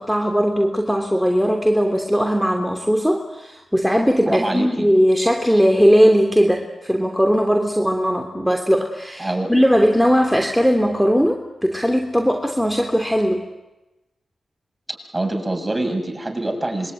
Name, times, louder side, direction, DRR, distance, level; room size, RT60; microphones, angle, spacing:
voice 1, 0.0-13.4, equal, ahead, 4 dB, 3.1 m, -18 dB
voice 2, 4.3-4.9 9.2-9.5 15.1-16.9, right 2 dB, 20° right, 4 dB, 7.5 m, -25 dB
26.5 x 23.5 x 9.3 m, 1.0 s
cardioid pair, 50°, 0 cm